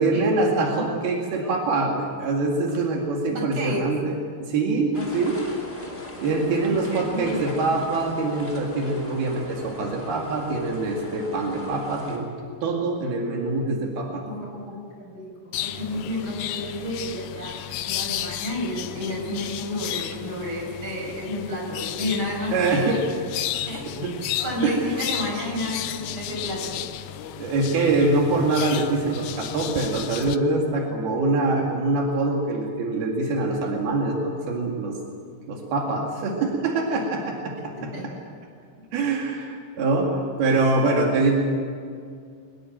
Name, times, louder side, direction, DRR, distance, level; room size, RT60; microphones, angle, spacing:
voice 1, 0.0-4.1 4.5-5.4 6.2-12.3 12.6-14.2 22.5-23.2 23.9-24.1 24.6-24.8 27.3-35.0 35.5-37.9 38.9-41.4, right 3 dB, 80° right, 0 dB, 4.2 m, -24 dB
voice 2, 3.3-3.9 4.9-5.1 6.9-7.5 14.3-23.0 23.7-23.8 24.4-26.8 37.7-38.0, left 1 dB, 30° right, -1 dB, 6.9 m, -31 dB
sound 1, 4.9-12.2, left 1 dB, 15° left, 3.8 m, -39 dB
sound 2, 15.5-30.4, left 12 dB, 85° left, 1.7 m, -33 dB
22.5 x 21.0 x 7.6 m, 2.3 s
omnidirectional pair, 4.4 m